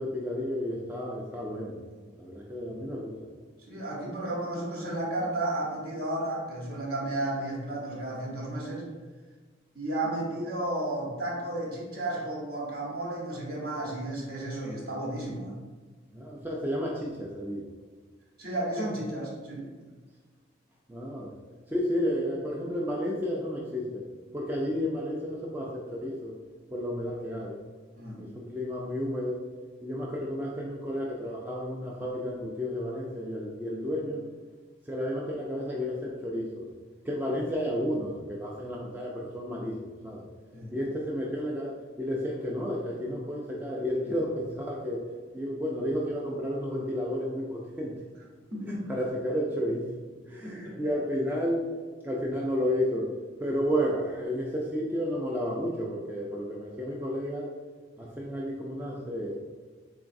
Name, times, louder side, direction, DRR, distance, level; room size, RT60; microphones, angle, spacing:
voice 1, 0.0-1.8 2.2-3.3 16.1-17.7 20.9-21.3 21.7-24.0 24.3-26.3 26.7-27.6 28.2-29.5 29.8-34.2 34.9-36.7 37.1-40.2 40.7-45.0 45.3-47.9 48.6-49.9 50.3-51.7 52.0-57.5 58.0-59.4, equal, 10° right, -4 dB, 0.3 m, -32 dB
voice 2, 3.7-8.9 9.7-15.6 18.4-19.7 28.0-28.2 37.3-37.4 40.5-40.7 48.5-48.9 50.4-50.8, right 1 dB, 55° right, -4 dB, 1.0 m, -33 dB
3.8 x 3.6 x 2.5 m, 1.4 s
head